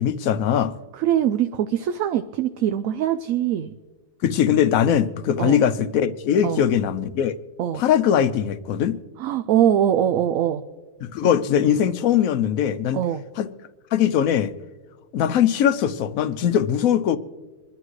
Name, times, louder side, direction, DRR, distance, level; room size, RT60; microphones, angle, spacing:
voice 1, 0.0-0.7 4.2-7.4 7.7-9.0 11.0-13.0 13.4-13.5 13.9-14.5 15.1-17.2, left 9 dB, 70° left, 1.0 m, -21 dB
voice 2, 0.9-3.7 5.4-5.6 6.4-6.6 7.6-7.8 9.2-10.6 11.2-11.3 12.9-13.2, right 10 dB, 70° right, 0.9 m, -22 dB
25.5 x 11.5 x 3.2 m
omnidirectional pair, 1.6 m